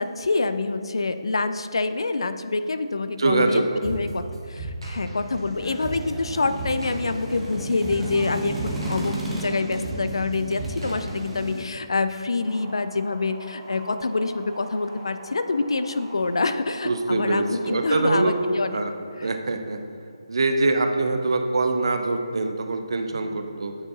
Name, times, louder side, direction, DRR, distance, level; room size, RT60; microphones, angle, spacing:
voice 1, 0.0-4.2 4.5-18.8, left 3 dB, 65° left, 10 dB, 0.3 m, -26 dB
voice 2, 3.2-3.7 16.8-18.4 18.7-18.9 19.2-19.8 20.3-23.8, right 3 dB, 55° right, 6 dB, 0.5 m, -23 dB
sound 1, 3.8-11.6, right 1 dB, 70° right, 1.5 m, -35 dB
sound 2, 5.2-11.6, right 1 dB, 5° right, 0.6 m, -34 dB
sound 3, 12.4-18.5, right 1 dB, 20° right, 1.1 m, -44 dB
8.6 x 4.5 x 2.6 m, 2.4 s
figure-of-eight pair, 150°, 3 cm